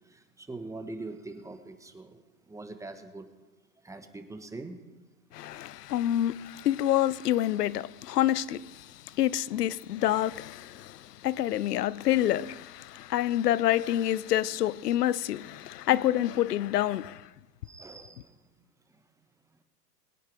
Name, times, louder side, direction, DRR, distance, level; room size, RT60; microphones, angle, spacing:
voice 1, 0.1-2.2 2.5-3.2 3.8-4.8 17.6-18.3, right 2 dB, 5° right, 1.3 m, -42 dB
voice 2, 5.3-8.9 9.2-17.2, left 12 dB, 70° left, 0.7 m, -27 dB
22.0 x 9.6 x 4.8 m
hypercardioid pair, 110°, 49 cm